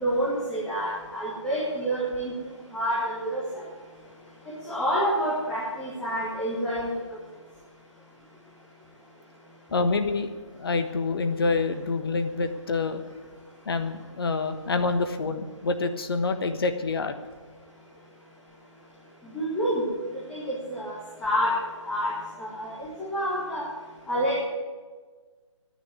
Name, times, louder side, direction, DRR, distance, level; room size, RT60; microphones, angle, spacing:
voice 1, 0.0-2.3 2.7-3.4 4.7-6.9 19.3-19.9 20.3-20.9 21.2-21.5 21.9-22.1 22.4-23.6 24.1-24.4, equal, 5° left, -8 dB, 2.1 m, -28 dB
voice 2, 9.7-10.3 10.6-13.0 13.6-17.1, left 3 dB, 50° left, 8 dB, 1.2 m, -27 dB
10.5 x 9.8 x 9.6 m, 1.4 s
figure-of-eight pair, 150°, 16 cm